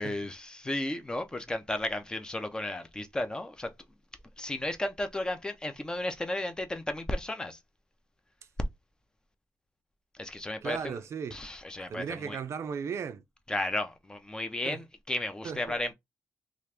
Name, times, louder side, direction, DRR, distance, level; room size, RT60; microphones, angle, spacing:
voice 1, 0.0-3.7 4.4-7.6 10.2-11.0 11.3-12.4 13.5-15.9, left 1 dB, 15° left, 0.5 m, -34 dB
voice 2, 10.6-11.4 11.8-13.2 14.6-14.8 15.4-15.8, right 6 dB, 55° right, 0.4 m, -36 dB
3.0 x 2.4 x 3.2 m
wide cardioid pair, 150°, 6 cm